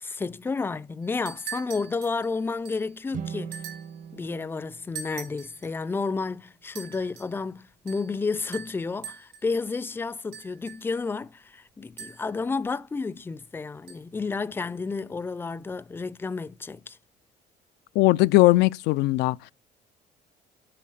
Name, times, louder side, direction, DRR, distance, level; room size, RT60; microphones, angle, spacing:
voice 1, 0.0-3.6 4.1-17.0, left 4 dB, 15° left, 0.4 m, -31 dB
sound 1, 1.0-3.0 3.5-4.0 4.9-5.7 6.7-7.4 7.9-8.2 8.5-9.5 10.3-11.0 12.0-12.4 13.9-14.0, right 7 dB, 80° right, 3.3 m, -42 dB
sound 2, 3.1-6.4, right 7 dB, 55° right, 0.9 m, -41 dB
voice 2, 18.0-19.4, left 19 dB, 85° left, 0.4 m, -19 dB
9.0 x 4.2 x 6.4 m
cardioid pair, 110°, 17 cm